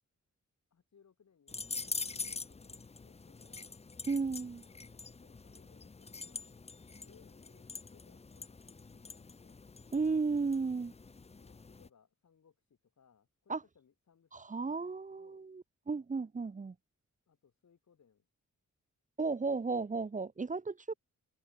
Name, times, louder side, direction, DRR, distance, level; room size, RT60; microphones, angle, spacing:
voice 1, 0.7-3.8 4.6-6.5 6.9-8.6 8.9-9.6 11.3-15.4 17.3-18.3, left 7 dB, 65° left, 5.3 m, -68 dB
sound 1, 1.5-11.9, left 4 dB, 20° left, 0.6 m, -45 dB
voice 2, 4.1-4.6 9.9-10.9 13.5-13.6 14.3-16.7 19.2-20.9, right 4 dB, 25° right, 0.7 m, -34 dB
wide cardioid pair, 120°, 31 cm